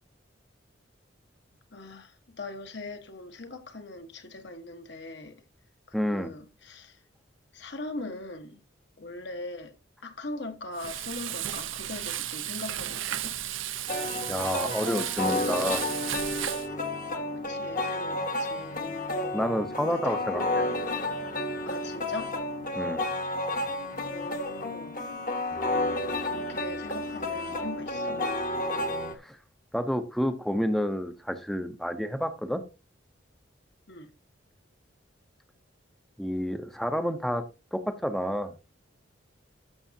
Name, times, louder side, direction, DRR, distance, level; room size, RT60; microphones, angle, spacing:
voice 1, 1.7-5.4 5.9-7.0 7.5-8.6 9.0-9.8 10.0-13.4 17.4-19.0 19.8-20.2 21.6-22.4 24.1-25.0 26.1-28.2 33.9-34.1, left 2 dB, 60° left, 1.2 m, -41 dB
voice 2, 5.9-6.3 14.3-15.8 19.3-20.6 22.7-23.0 29.1-29.4 29.7-32.6 36.2-37.4 37.7-38.6, equal, ahead, 0.6 m, -29 dB
Frying (food), 10.7-16.7, right 12 dB, 80° right, 0.7 m, -34 dB
sound 1, 13.9-29.2, left 2 dB, 45° left, 1.2 m, -31 dB
13.0 x 6.1 x 2.7 m
head